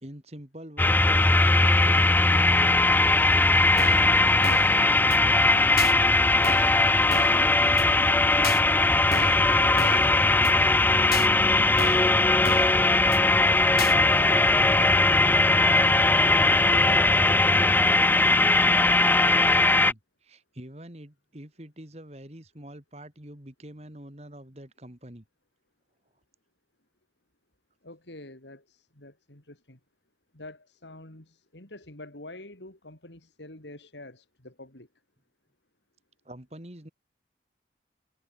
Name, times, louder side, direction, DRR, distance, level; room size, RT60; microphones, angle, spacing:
voice 1, 0.0-4.7 5.0-9.4 18.9-25.2 36.2-36.9, right 1 dB, 35° right, 2.9 m, -45 dB
sound 1, 0.8-19.9, left 2 dB, 10° left, 0.4 m, -20 dB
sound 2, 3.8-4.1 4.4-4.8 5.1-5.2 5.8-5.9 6.4-6.8 7.1-7.4 7.8-7.9 8.4-8.6 9.1-9.4 9.8-10.1 10.4-10.5 11.1-11.3 11.8-12.1 12.4-12.8 13.1-13.2 13.8-14.0, left 5 dB, 60° left, 2.3 m, -33 dB
voice 2, 12.6-15.1 15.4-17.6 27.8-29.8 30.3-34.9, left 2 dB, 85° left, 4.5 m, -45 dB
head